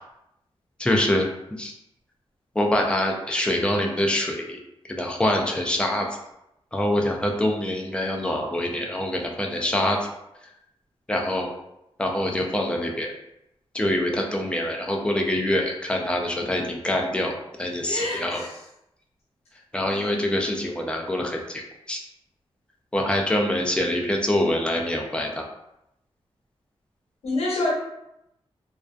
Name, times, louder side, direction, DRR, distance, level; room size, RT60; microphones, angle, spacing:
voice 1, 0.8-1.3 1.6-1.7 2.6-4.6 4.9-6.1 6.7-10.0 11.1-11.5 12.0-13.1 13.7-18.4 19.7-22.0 22.9-25.4, left 1 dB, 10° left, 1 dB, 0.4 m, -25 dB
voice 2, 17.8-18.5 27.2-27.7, left 2 dB, 75° left, -5 dB, 0.9 m, -27 dB
2.5 x 2.2 x 2.3 m, 0.84 s
wide cardioid pair, 130°, 11 cm